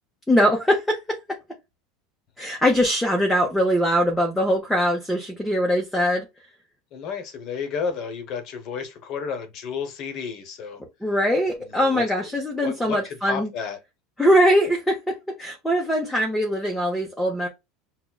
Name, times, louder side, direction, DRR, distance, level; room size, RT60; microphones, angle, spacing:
voice 1, 0.3-1.4 2.4-6.3 11.0-13.5 14.2-17.5, equal, 5° left, 0.6 m, -22 dB
voice 2, 6.9-10.8 11.6-13.8, left 6 dB, 45° left, 0.8 m, -32 dB
5.8 x 2.0 x 2.3 m
supercardioid pair, 155°, 0 cm